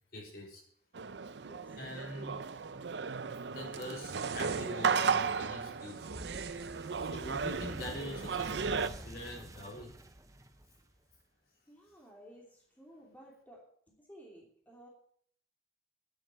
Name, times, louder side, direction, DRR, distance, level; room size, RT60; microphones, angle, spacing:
voice 1, 0.1-0.6 1.8-2.8 3.4-6.1 7.0-9.9, left 1 dB, 55° left, -2 dB, 3.9 m, -44 dB
sound 1, 0.9-8.9, right 5 dB, 85° right, 0.6 m, -35 dB
voice 2, 1.4-1.8 11.7-14.9, equal, 10° left, -2 dB, 2.8 m, -56 dB
sound 2, 3.8-5.1 5.8-7.6 8.7-9.4, right 5 dB, 70° right, 1.1 m, -49 dB
sound 3, 6.0-11.2, right 1 dB, 20° right, 0.9 m, -48 dB
10.0 x 7.9 x 8.4 m, 0.62 s
head